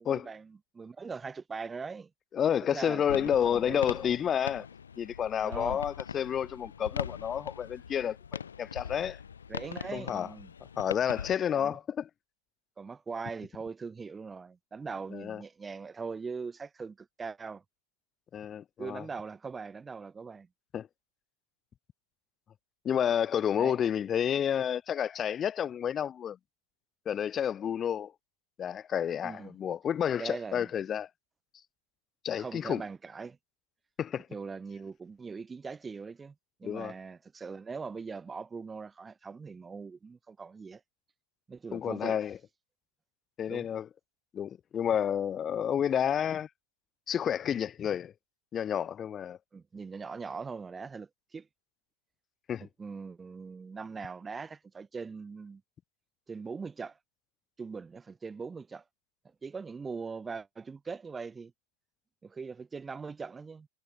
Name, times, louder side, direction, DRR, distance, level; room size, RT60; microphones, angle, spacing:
voice 1, 0.0-2.1 2.6-3.8 5.4-5.8 9.5-10.5 11.5-11.8 12.8-17.6 18.8-20.5 23.6-23.9 29.2-29.6 30.2-30.7 32.4-33.4 34.3-36.3 36.6-40.8 41.5-42.2 43.5-43.7 49.5-51.5 52.6-55.6 56.3-57.0 57.6-58.8 59.4-61.5 62.2-63.7, right 5 dB, 15° right, 2.5 m, -41 dB
voice 2, 2.3-4.7 5.0-9.2 9.9-10.3 10.8-12.1 15.1-15.4 18.3-19.0 20.7-20.9 22.8-26.4 27.0-28.1 28.6-31.1 32.2-32.8 34.0-34.3 36.6-36.9 41.7-42.4 43.4-43.9 44.3-46.5 47.1-48.1 48.5-49.4 52.5-52.7, left 9 dB, 25° left, 3.2 m, -30 dB
sound 1, 3.1-11.3, left 7 dB, 75° left, 4.0 m, -41 dB
figure-of-eight pair, 100°, 0 cm